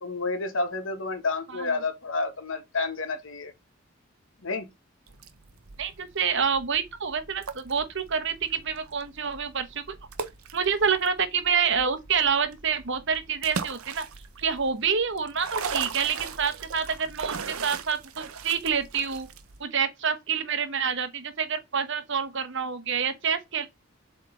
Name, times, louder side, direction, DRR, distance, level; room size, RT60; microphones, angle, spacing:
voice 1, 0.0-3.5 4.4-4.7, left 3 dB, 60° left, 1.3 m, -30 dB
sound 1, 5.1-19.6, right 5 dB, 80° right, 0.9 m, -39 dB
voice 2, 5.8-9.8 10.5-14.0 14.4-19.3 19.6-23.7, right 6 dB, 55° right, 1.0 m, -27 dB
7.7 x 3.6 x 3.8 m
head